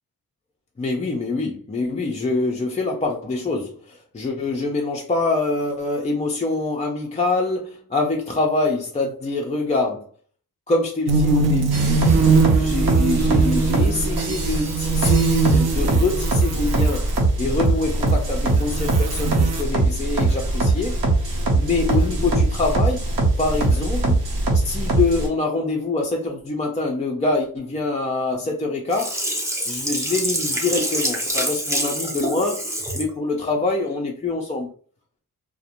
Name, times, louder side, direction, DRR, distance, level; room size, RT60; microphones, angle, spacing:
voice 1, 0.8-10.1 10.7-12.1 12.5-17.1 17.4-21.0 21.2-23.0 23.4-24.2 24.6-29.2 29.7-34.7, left 3 dB, 20° left, 0.3 m, -25 dB
sound 1, 11.1-17.2 17.8-19.6, right 5 dB, 45° right, 0.4 m, -22 dB
sound 2, 11.7-25.3, right 2 dB, 70° right, 0.8 m, -21 dB
Sink (filling or washing), 28.9-33.1 33.5-33.6, equal, 10° right, 0.7 m, -26 dB
2.4 x 2.1 x 2.8 m
wide cardioid pair, 110°, 37 cm